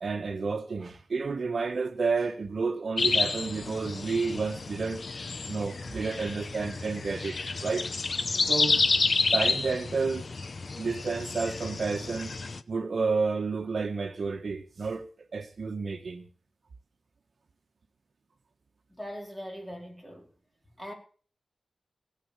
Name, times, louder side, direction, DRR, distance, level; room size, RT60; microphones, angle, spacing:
voice 1, 0.0-5.0 5.5-7.9 8.5-8.8 9.3-10.2 10.8-12.3 12.7-15.0 15.3-16.2, right 4 dB, 60° right, 1.3 m, -30 dB
sound 1, 3.0-12.6, left 4 dB, 50° left, 0.9 m, -30 dB
voice 2, 8.4-8.8 18.9-20.3 20.8-20.9, equal, 5° left, 4.5 m, -41 dB
18.5 x 7.8 x 7.0 m
wide cardioid pair, 100°, 0 cm